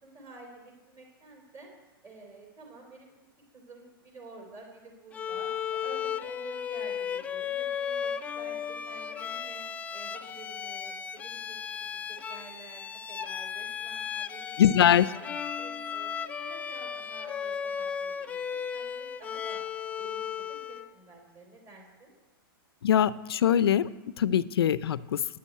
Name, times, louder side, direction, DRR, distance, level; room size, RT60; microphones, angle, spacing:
voice 1, 0.0-1.7 2.0-3.1 3.5-9.6 9.9-15.2 15.6-19.6 20.0-22.1, right 3 dB, 25° right, 1 dB, 3.7 m, -50 dB
Bowed string instrument, 5.1-20.9, left 7 dB, 10° left, 0.4 m, -35 dB
voice 2, 14.6-15.1 22.8-23.9 24.2-25.2, left 9 dB, 90° left, 17 dB, 0.5 m, -22 dB
9.6 x 8.4 x 9.4 m, 1.1 s
hypercardioid pair, 150°, 12 cm